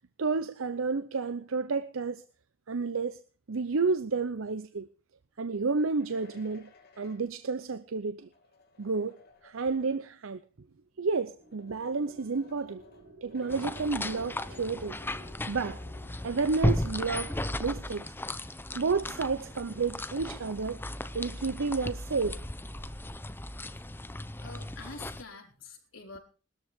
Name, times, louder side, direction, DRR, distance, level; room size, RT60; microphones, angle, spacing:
voice 1, 0.2-2.2 2.7-3.2 3.5-4.9 5.4-6.7 7.0-8.3 8.8-9.2 9.4-10.4 11.0-12.8 13.2-15.0 15.5-15.8 16.2-18.1 18.7-20.8 21.1-22.4, right 4 dB, 80° right, 0.7 m, -31 dB
sound 1, 5.6-10.3 11.2-15.4 15.7-15.8 16.4-18.0, left 3 dB, 50° left, 2.9 m, -58 dB
sound 2, 10.8-19.3, equal, 50° right, 3.5 m, -55 dB
sound 3, 13.5-25.2, left 1 dB, 10° left, 0.7 m, -35 dB
voice 2, 24.4-26.2, left 4 dB, 75° left, 4.9 m, -46 dB
20.0 x 13.5 x 3.6 m
head